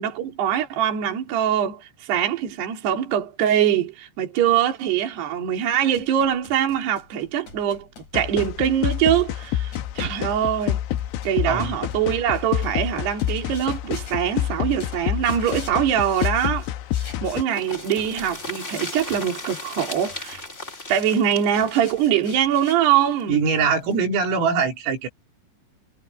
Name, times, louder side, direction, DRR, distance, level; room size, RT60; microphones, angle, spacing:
voice 1, 0.0-10.8 11.2-16.7 17.2-20.4 20.9-23.4, right 10 dB, 55° right, 5.0 m, -23 dB
sound 1, 5.9-23.2, left 4 dB, 35° left, 7.7 m, -45 dB
sound 2, 8.1-17.4, left 12 dB, 75° left, 3.2 m, -28 dB
sound 3, 17.5-23.2 23.5-23.6 23.9-24.0, left 2 dB, 15° left, 3.6 m, -36 dB
voice 2, 23.3-25.1, right 5 dB, 80° right, 7.1 m, -22 dB
omnidirectional pair, 5.9 m